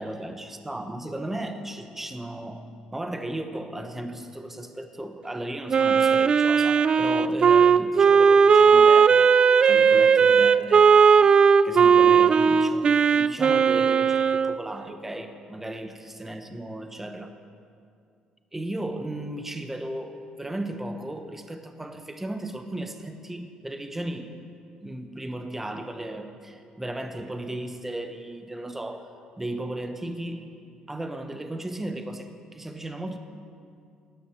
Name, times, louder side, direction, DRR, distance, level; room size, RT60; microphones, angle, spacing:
voice 1, 0.0-2.7 2.9-9.3 9.6-10.9 11.6-17.3 18.5-24.3 24.8-29.1 29.4-30.4 30.9-33.2, right 1 dB, 10° right, 7 dB, 0.9 m, -35 dB
Wind instrument woodwind instrument, 5.7-14.6, right 6 dB, 40° right, 0.3 m, -17 dB
11.5 x 6.1 x 7.6 m, 2.3 s
supercardioid pair, 80°, 2 cm